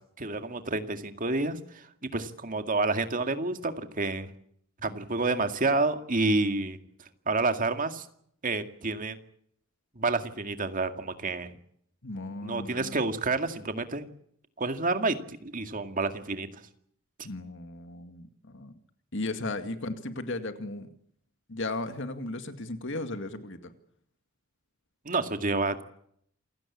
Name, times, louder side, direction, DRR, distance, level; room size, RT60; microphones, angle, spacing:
voice 1, 0.2-4.3 4.8-6.8 7.3-8.1 8.4-9.2 10.0-11.5 12.4-14.1 14.6-16.5 25.1-25.8, right 3 dB, 40° right, 7 dB, 2.1 m, -29 dB
voice 2, 12.0-13.0 17.2-18.7 19.1-20.9 21.5-23.7, left 2 dB, 65° left, 8 dB, 2.1 m, -36 dB
28.0 x 17.0 x 8.6 m, 0.69 s
head